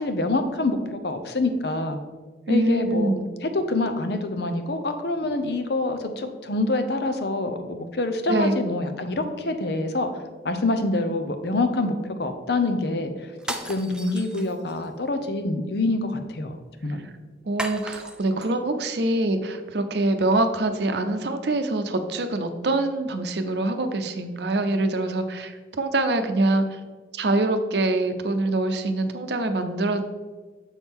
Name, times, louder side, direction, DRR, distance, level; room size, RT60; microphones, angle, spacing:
voice 1, 0.0-2.0 2.5-10.1 10.4-13.1 13.6-16.6 16.8-17.0, left 2 dB, 65° left, 7 dB, 0.7 m, -26 dB
voice 2, 2.5-3.3 8.3-8.6 17.5-26.7 27.1-30.0, right 2 dB, 70° right, 7 dB, 0.6 m, -24 dB
sound 1, 13.4-14.9 17.6-18.5, right 1 dB, 5° right, 0.4 m, -35 dB
7.1 x 6.1 x 3.6 m, 1.3 s
head